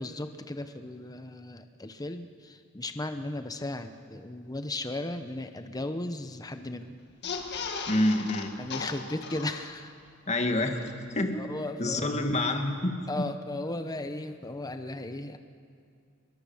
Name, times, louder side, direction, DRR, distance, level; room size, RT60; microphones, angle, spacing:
voice 1, 0.0-6.9 8.6-9.9 11.3-12.1 13.1-15.4, left 2 dB, 20° left, 8 dB, 0.9 m, -36 dB
sound 1, 7.1-10.1 10.5-10.6 10.8-10.9, left 5 dB, 55° left, 1.9 m, -37 dB
voice 2, 7.9-8.5 10.3-10.8 11.1-11.4 11.8-13.3, left 1 dB, 35° left, 5 dB, 2.0 m, -27 dB
26.5 x 22.5 x 7.2 m, 2.3 s
head